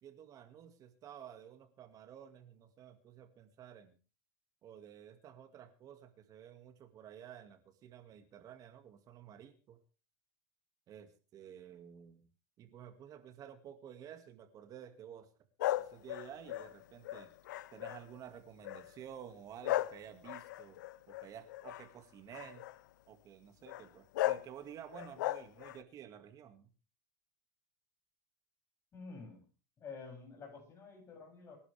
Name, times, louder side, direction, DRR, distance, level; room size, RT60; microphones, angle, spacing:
voice 1, 0.0-4.0 4.6-9.8 10.9-12.3 12.6-15.3 15.8-17.3 17.7-20.8 21.1-22.6 23.1-26.7, right 9 dB, 35° right, 8 dB, 2.1 m, -52 dB
sound 1, 15.6-18.2 18.6-19.0 19.6-21.9 22.3-22.8 23.7-23.8 24.1-24.5 24.9-25.8, left 15 dB, 85° left, 0.7 m, -36 dB
voice 2, 28.9-29.4 29.8-31.6, left 4 dB, 25° left, 1 dB, 7.4 m, -49 dB
25.5 x 11.0 x 3.5 m, 0.36 s
supercardioid pair, 130°, 10 cm